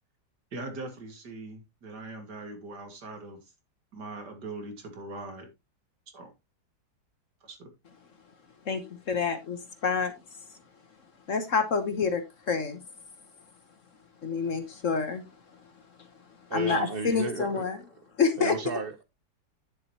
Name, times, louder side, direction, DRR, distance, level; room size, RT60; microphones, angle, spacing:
voice 1, 0.5-3.4 3.9-5.5 6.1-6.3 7.4-7.7, right 2 dB, 65° right, 2.5 m, -41 dB
voice 2, 8.6-10.1 11.3-12.8 14.2-15.3 16.5-17.8 18.2-18.5, left 5 dB, 50° left, 1.3 m, -28 dB
voice 3, 16.5-17.7 18.4-19.0, right 4 dB, 40° right, 0.9 m, -33 dB
10.0 x 7.6 x 2.9 m
omnidirectional pair, 2.0 m